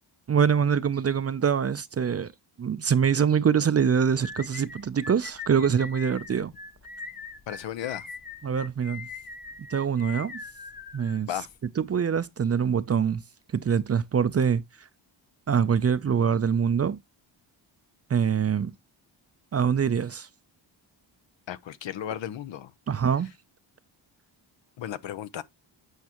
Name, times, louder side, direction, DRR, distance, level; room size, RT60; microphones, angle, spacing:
voice 1, 0.3-2.3 2.6-6.5 8.4-9.1 9.7-10.4 10.9-11.3 11.8-13.2 13.5-14.6 15.5-17.0 18.1-18.7 19.5-20.3 22.9-23.3, right 7 dB, 30° right, 0.5 m, -24 dB
sound 1, 4.2-11.6, left 5 dB, 20° left, 0.6 m, -42 dB
voice 2, 7.5-8.1 11.3-11.5 21.5-22.7 24.8-25.4, left 11 dB, 65° left, 0.7 m, -34 dB
8.2 x 4.6 x 2.9 m
cardioid pair, 70°, 48 cm